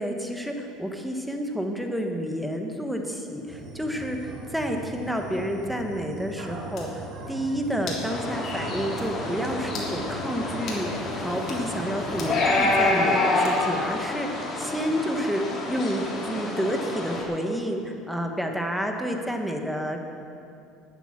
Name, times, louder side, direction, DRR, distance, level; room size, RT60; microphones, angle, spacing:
voice 1, 0.0-20.0, equal, ahead, 3 dB, 1.3 m, -30 dB
sound 1, 3.5-13.0, right 1 dB, 45° right, 2.9 m, -39 dB
sound 2, 6.7-6.9 7.9-8.1 8.5-8.6 9.0-9.1 9.7-9.9 10.7-10.9 11.4-11.6 12.2-12.4 13.4-13.8, left 4 dB, 50° left, 3.5 m, -38 dB
sound 3, 8.0-17.2, left 2 dB, 35° left, 3.1 m, -28 dB
12.5 x 8.9 x 7.4 m, 2.5 s
cardioid pair, 125°, 0 cm